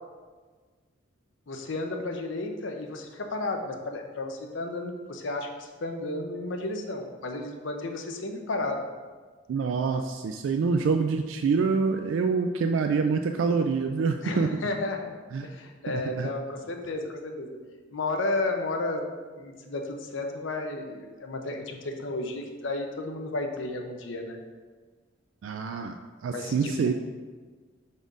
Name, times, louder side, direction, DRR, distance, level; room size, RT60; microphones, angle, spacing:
voice 1, 1.5-8.8 14.2-15.1 15.4-17.6 17.9-19.0 19.4-24.4 26.3-26.9, left 2 dB, 70° left, 4 dB, 0.7 m, -33 dB
voice 2, 9.5-14.5 15.3-15.5 15.9-16.3 25.4-26.9, right 5 dB, 75° right, 6 dB, 0.3 m, -26 dB
5.2 x 4.1 x 4.8 m, 1.4 s
head